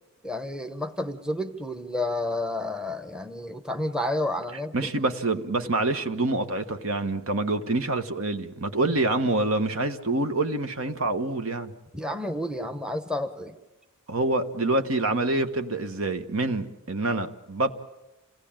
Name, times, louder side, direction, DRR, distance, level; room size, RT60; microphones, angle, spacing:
voice 1, 0.2-4.7 11.9-13.6, left 1 dB, 5° right, 0.9 m, -30 dB
voice 2, 4.7-11.7 14.1-17.7, right 2 dB, 65° right, 1.3 m, -26 dB
27.5 x 17.5 x 8.8 m
head